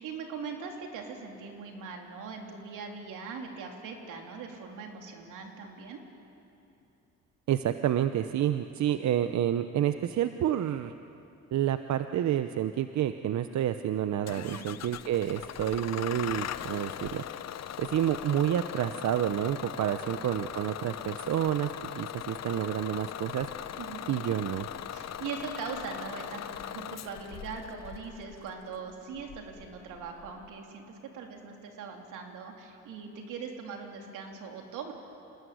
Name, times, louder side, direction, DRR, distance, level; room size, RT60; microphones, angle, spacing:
voice 1, 0.0-6.0 14.4-14.7 19.8-20.1 23.8-24.1 24.9-34.9, right 5 dB, 90° right, 2 dB, 3.4 m, -41 dB
voice 2, 7.5-10.9 11.5-17.2 17.8-23.5 24.1-24.7, right 11 dB, 65° right, 10 dB, 0.8 m, -29 dB
Bus / Engine starting, 14.3-30.5, left 10 dB, 60° left, 0.9 m, -40 dB
27.0 x 19.5 x 9.5 m, 2.9 s
cardioid pair, 90°, 30 cm